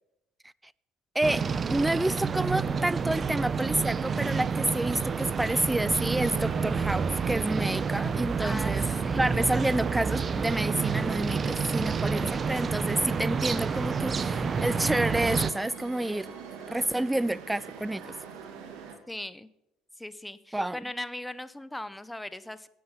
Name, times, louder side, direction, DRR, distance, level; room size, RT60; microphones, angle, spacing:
sound 1, 1.2-15.5, right 5 dB, 35° right, 0.7 m, -29 dB
voice 1, 1.7-8.8 9.1-16.3 16.7-18.1 20.5-20.8, right 1 dB, 10° right, 0.4 m, -29 dB
sound 2, 3.7-19.0, right 6 dB, 75° right, 2.3 m, -45 dB
voice 2, 8.4-9.3 19.1-19.5 20.0-22.7, left 1 dB, 10° left, 0.7 m, -39 dB
9.7 x 9.4 x 7.2 m
supercardioid pair, 75°, 0 cm